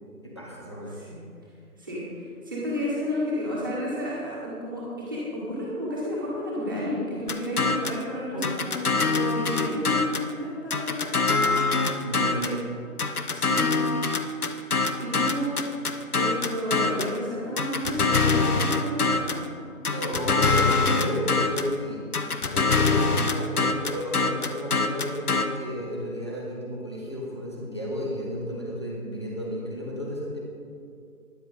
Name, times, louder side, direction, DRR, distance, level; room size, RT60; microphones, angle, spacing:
voice 1, 0.2-1.0 8.3-8.6 12.0-12.7 19.8-30.4, equal, 20° left, -4 dB, 1.0 m, -33 dB
voice 2, 1.8-11.4 13.3-13.7 15.0-15.7 16.1-19.5, left 1 dB, 15° right, -8 dB, 1.7 m, -31 dB
sound 1, 7.3-8.0 8.4-10.3 10.7-12.6 13.0-17.2 17.6-19.5 19.9-21.7 22.1-25.5, left 3 dB, 75° left, 1.0 m, -24 dB
13.0 x 11.0 x 4.1 m, 2.4 s
figure-of-eight pair, 170°, 45 cm